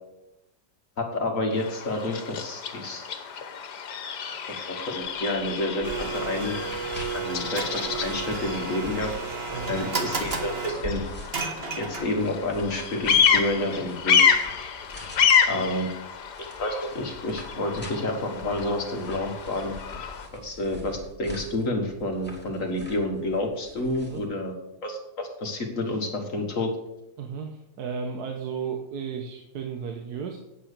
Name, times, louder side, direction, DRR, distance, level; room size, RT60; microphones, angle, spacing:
voice 1, 1.0-3.1 4.7-6.6 6.9-9.1 9.7-11.0 11.8-14.4 15.4-15.9 16.4-19.7 20.3-24.5 24.8-26.7, left 1 dB, 55° left, 3 dB, 1.8 m, -29 dB
Bird vocalization bird call bird song, 1.5-20.3, left 7 dB, 90° left, 1.7 m, -28 dB
sound 1, 5.0-24.3, left 2 dB, 5° left, 2.6 m, -44 dB
Domestic sounds home sounds, 5.8-12.3, right 4 dB, 40° right, 1.4 m, -33 dB
voice 2, 15.2-15.7 24.1-24.2 27.2-30.4, right 6 dB, 75° right, 3 dB, 1.6 m, -34 dB
8.8 x 8.4 x 6.7 m, 0.91 s
omnidirectional pair, 1.7 m